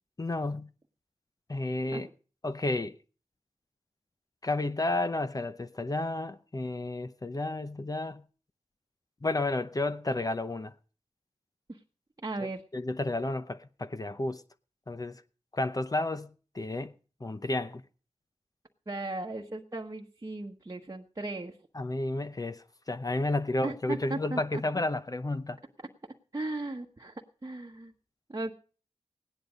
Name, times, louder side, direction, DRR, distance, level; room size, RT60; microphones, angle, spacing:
voice 1, 0.2-0.7 1.5-2.1 2.4-3.0 4.4-8.2 9.2-10.7 12.7-14.4 14.9-15.2 15.5-16.9 17.2-17.8 21.7-25.6, left 2 dB, 30° left, 0.7 m, -31 dB
voice 2, 12.2-12.6 18.9-21.5 23.6-24.6 26.3-27.9 28.3-28.5, right 2 dB, 25° right, 1.2 m, -36 dB
16.5 x 10.5 x 5.1 m
wide cardioid pair, 70°, 12 cm